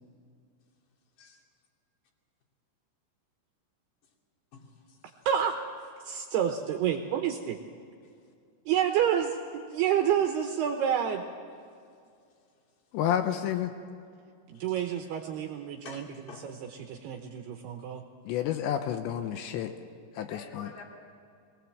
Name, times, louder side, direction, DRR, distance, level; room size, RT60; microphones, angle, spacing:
voice 1, 5.3-5.6 6.0-7.6 8.7-11.2 14.5-16.1 16.4-18.0, right 9 dB, 75° right, 4 dB, 2.6 m, -29 dB
voice 2, 12.9-13.7 18.3-19.7 20.2-20.7, left 10 dB, 80° left, 7 dB, 2.9 m, -30 dB
voice 3, 15.9-16.5 20.1-20.8, left 6 dB, 50° left, 0 dB, 3.8 m, -47 dB
22.0 x 19.5 x 7.6 m, 2.3 s
omnidirectional pair, 5.5 m